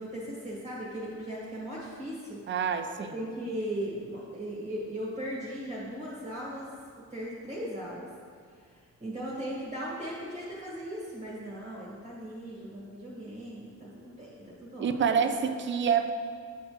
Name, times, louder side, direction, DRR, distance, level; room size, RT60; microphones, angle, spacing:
voice 1, 0.0-2.4 3.0-6.7 7.1-8.1 9.0-15.4, right 1 dB, 25° right, -7 dB, 1.6 m, -38 dB
voice 2, 2.5-3.2 14.8-16.1, right 7 dB, 40° right, 8 dB, 0.5 m, -27 dB
9.1 x 4.4 x 3.1 m, 2.1 s
cardioid pair, 90°, 30 cm